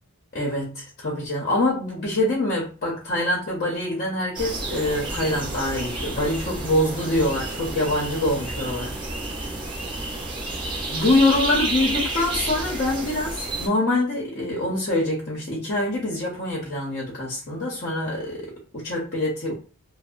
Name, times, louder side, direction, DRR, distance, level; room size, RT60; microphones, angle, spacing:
voice 1, 0.3-8.9 10.9-19.5, left 1 dB, 45° left, -3 dB, 0.7 m, -25 dB
sound 1, 4.3-13.7, right 2 dB, 20° right, 0.6 m, -30 dB
2.6 x 2.0 x 2.4 m, 0.37 s
head